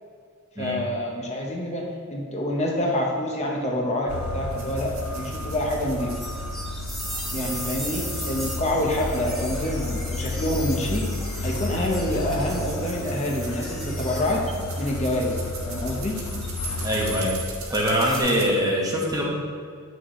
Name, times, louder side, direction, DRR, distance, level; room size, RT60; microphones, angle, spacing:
voice 1, 0.6-6.1 7.3-11.1 11.4-14.4 14.8-16.2, left 1 dB, 30° left, -1 dB, 0.8 m, -27 dB
sound 1, 4.1-17.5, left 2 dB, 70° left, 0.5 m, -32 dB
sound 2, 4.5-18.4, right 4 dB, 70° right, 1.4 m, -43 dB
sound 3, 6.1-18.2, equal, ahead, 1.1 m, -38 dB
voice 2, 16.8-17.4 17.7-19.2, equal, 15° right, -3 dB, 1.1 m, -23 dB
8.1 x 6.2 x 3.1 m, 2.2 s
head